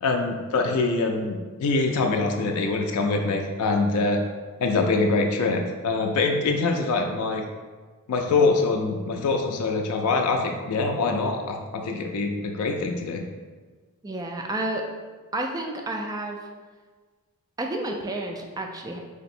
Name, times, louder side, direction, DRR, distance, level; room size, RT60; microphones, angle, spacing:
voice 1, 0.0-4.2 4.6-7.5 8.1-13.2, left 3 dB, 75° left, 3 dB, 0.3 m, -24 dB
voice 2, 14.0-14.8 15.3-16.4 17.6-19.0, right 2 dB, 15° right, 2 dB, 0.3 m, -30 dB
3.3 x 2.0 x 4.2 m, 1.4 s
head